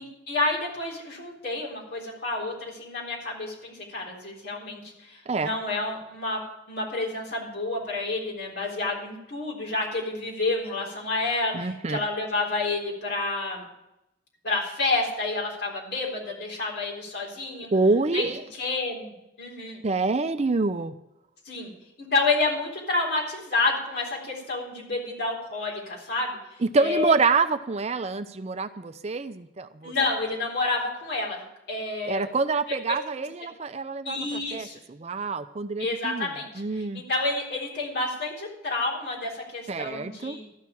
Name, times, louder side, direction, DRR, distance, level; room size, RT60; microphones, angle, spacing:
voice 1, 0.0-6.4 6.7-13.6 14.4-17.7 18.1-18.3 18.6-19.8 21.5-21.7 22.0-26.4 26.8-27.1 29.8-32.3 34.0-34.8 35.8-40.5, left 3 dB, 60° left, -2 dB, 3.8 m, -29 dB
voice 2, 11.5-12.0 17.7-18.4 19.8-20.9 26.7-29.9 32.0-36.3 36.6-37.0 39.7-40.4, right 3 dB, 35° right, 11 dB, 0.5 m, -26 dB
13.0 x 6.0 x 8.5 m, 0.89 s
head